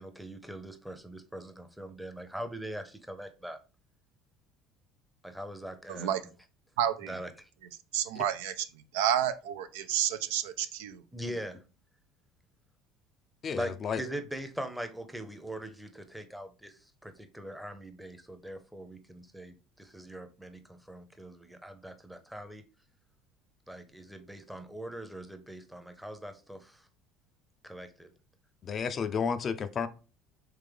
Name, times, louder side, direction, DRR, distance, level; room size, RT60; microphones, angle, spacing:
voice 1, 0.0-3.6 5.2-6.1 7.1-7.5 11.1-11.6 13.6-13.7 14.0-22.6 23.7-26.9 27.6-28.1, right 1 dB, 5° right, 0.7 m, -42 dB
voice 2, 5.9-6.2 6.8-7.2 7.9-8.6 8.9-11.0, right 10 dB, 80° right, 0.3 m, -30 dB
voice 3, 13.4-14.0 28.6-29.9, left 6 dB, 40° left, 0.4 m, -32 dB
3.4 x 3.3 x 3.4 m
hypercardioid pair, 70°, 0 cm